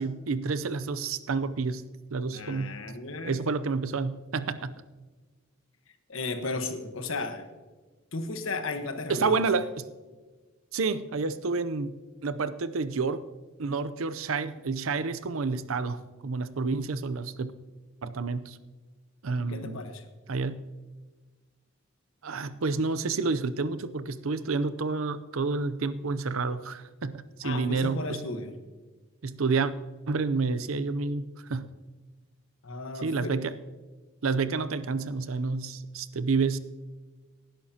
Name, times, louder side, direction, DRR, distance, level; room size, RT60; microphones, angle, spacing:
voice 1, 0.0-1.8 2.1-2.7 3.2-4.7 9.1-9.9 10.7-12.0 12.2-13.2 13.6-17.5 18.0-18.6 19.2-19.8 20.3-20.6 22.2-28.2 29.2-29.7 30.1-31.7 33.0-33.5 34.2-36.6, right 4 dB, 80° right, 14 dB, 0.6 m, -29 dB
voice 2, 2.3-3.4 6.1-7.5 8.1-9.4 19.4-20.0 27.4-28.6 32.6-33.4, left 3 dB, 70° left, 7 dB, 1.2 m, -35 dB
18.5 x 11.0 x 2.9 m, 1.3 s
head